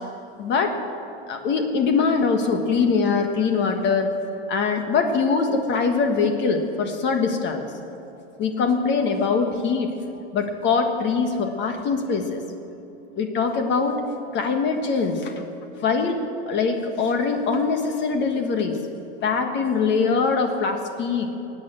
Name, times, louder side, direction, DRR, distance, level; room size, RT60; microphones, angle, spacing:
voice 1, 0.4-0.7 1.3-4.1 4.5-7.6 8.4-9.9 10.3-12.4 13.2-14.0 14.3-15.3 15.8-16.2 16.5-18.8 19.2-21.3, left 5 dB, 35° left, 5 dB, 1.5 m, -22 dB
18.5 x 9.1 x 7.5 m, 2.9 s
supercardioid pair, 130°, 32 cm